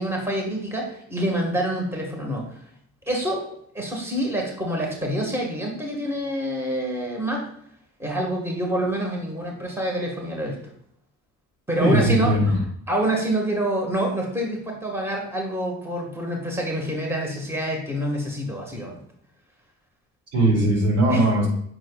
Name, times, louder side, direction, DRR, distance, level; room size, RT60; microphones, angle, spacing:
voice 1, 0.0-2.4 3.1-3.4 3.7-7.5 8.0-10.6 11.7-12.5 12.9-18.9 21.1-21.2, right 1 dB, 10° right, 0 dB, 1.8 m, -26 dB
voice 2, 11.8-12.5 20.3-21.5, right 1 dB, 55° right, -2 dB, 2.9 m, -19 dB
9.0 x 6.2 x 2.4 m, 0.68 s
cardioid pair, 90°, 30 cm